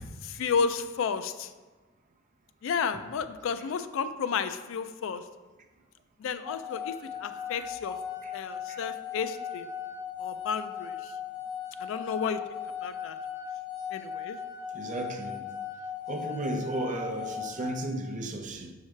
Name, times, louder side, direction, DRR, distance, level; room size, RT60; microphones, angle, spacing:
voice 1, 0.2-1.5 2.6-5.2 6.2-8.0 8.3-9.7 10.2-11.0 11.8-13.2 13.9-14.4, left 6 dB, 70° left, 11 dB, 0.3 m, -32 dB
sound 1, 6.4-17.7, left 8 dB, 5° right, 1.2 m, -38 dB
voice 2, 14.7-15.4 16.1-18.7, right 2 dB, 40° right, 5 dB, 0.6 m, -34 dB
6.5 x 4.8 x 3.2 m, 1.2 s
head